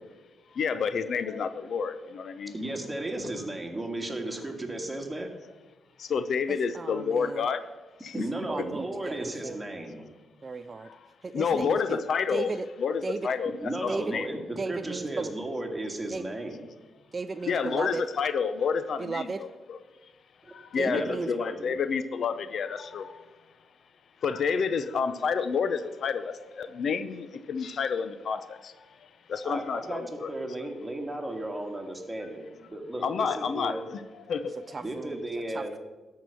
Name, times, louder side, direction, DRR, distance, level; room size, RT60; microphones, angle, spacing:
voice 1, 0.5-2.5 6.0-7.7 8.0-8.2 10.8-11.1 11.3-12.5 12.8-14.3 17.5-19.8 20.5-23.3 24.2-28.9 29.3-30.3 30.6-30.7 33.0-34.0 34.3-34.5, left 6 dB, 65° left, 12 dB, 0.6 m, -29 dB
voice 2, 2.5-5.3 8.1-10.1 13.6-16.6 20.9-21.7 29.4-30.0 30.3-33.8 34.8-35.7, right 1 dB, 15° right, 2 dB, 1.9 m, -34 dB
voice 3, 6.5-7.5 8.3-9.6 10.4-10.9 11.2-12.0 12.3-12.7 13.0-13.3 13.9-14.2 14.6-15.3 16.1-16.3 17.1-18.0 19.0-19.4 20.8-21.3 34.7-35.2 35.5-35.8, right 4 dB, 40° right, 12 dB, 0.4 m, -35 dB
12.0 x 4.8 x 6.9 m, 1.2 s
cardioid pair, 80°, 0 cm